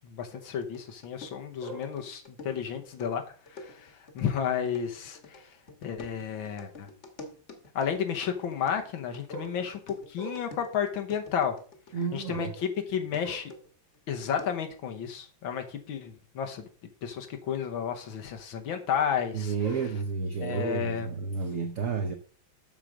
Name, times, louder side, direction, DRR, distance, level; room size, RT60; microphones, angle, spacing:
voice 1, 0.0-5.6 5.8-6.9 7.8-11.6 12.1-13.4 14.1-16.7 17.0-19.5 20.4-21.1, left 8 dB, 80° left, 1.8 m, -32 dB
sound 1, 0.6-12.8 13.1-14.8, left 2 dB, 40° left, 1.5 m, -49 dB
voice 2, 1.6-1.9 9.3-9.6 10.2-10.5 11.9-12.6 13.2-13.4 19.3-22.1, right 5 dB, 50° right, 1.1 m, -32 dB
7.4 x 6.7 x 4.9 m
omnidirectional pair, 2.2 m